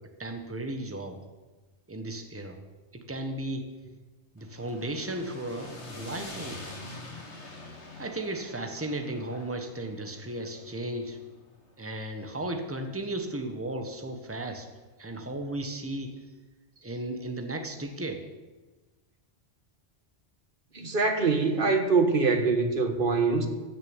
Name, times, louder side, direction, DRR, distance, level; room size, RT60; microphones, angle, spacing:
voice 1, 0.2-1.2 1.9-2.6 2.9-3.7 4.3-6.8 8.0-11.2 11.8-14.7 15.0-16.2 16.8-18.3, right 1 dB, 10° right, 5 dB, 1.3 m, -35 dB
sound 1, 4.4-12.6, left 2 dB, 85° left, 2.3 m, -45 dB
voice 2, 20.7-23.5, right 4 dB, 50° right, 6 dB, 1.6 m, -24 dB
15.0 x 6.8 x 8.8 m, 1.2 s
omnidirectional pair, 1.1 m